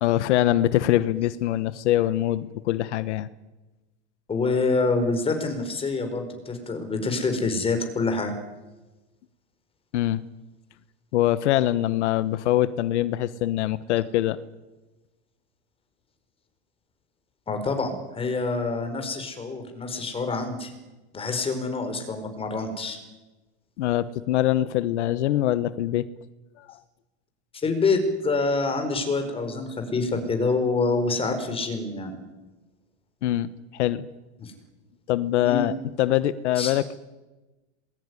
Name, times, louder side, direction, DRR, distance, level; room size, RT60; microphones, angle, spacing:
voice 1, 0.0-3.3 9.9-10.2 11.1-14.4 23.8-26.1 26.6-26.7 33.2-34.1 35.1-37.0, left 13 dB, 80° left, 15 dB, 1.2 m, -23 dB
voice 2, 4.3-8.3 17.5-20.7 21.1-23.0 27.6-32.1 34.4-34.5 35.4-35.7 36.5-36.7, left 3 dB, 15° left, 6 dB, 5.1 m, -26 dB
26.5 x 21.5 x 9.9 m, 1.1 s
supercardioid pair, 145°, 34 cm